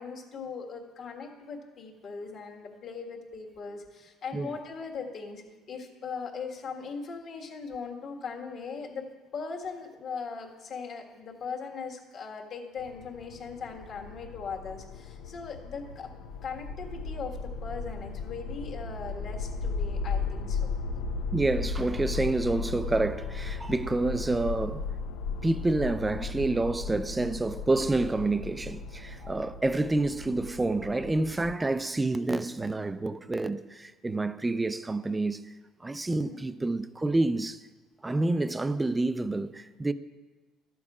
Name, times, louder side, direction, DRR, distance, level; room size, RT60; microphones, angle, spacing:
voice 1, 0.0-16.1 16.4-20.7 36.1-36.4, left 5 dB, 45° left, 1.6 m, -39 dB
sound 1, 12.8-31.5, left 4 dB, 85° left, 0.7 m, -36 dB
voice 2, 21.3-24.8 25.4-35.4 35.8-37.6 38.0-39.9, right 2 dB, 10° right, 0.4 m, -28 dB
12.5 x 7.0 x 4.9 m
cardioid pair, 130°, 0 cm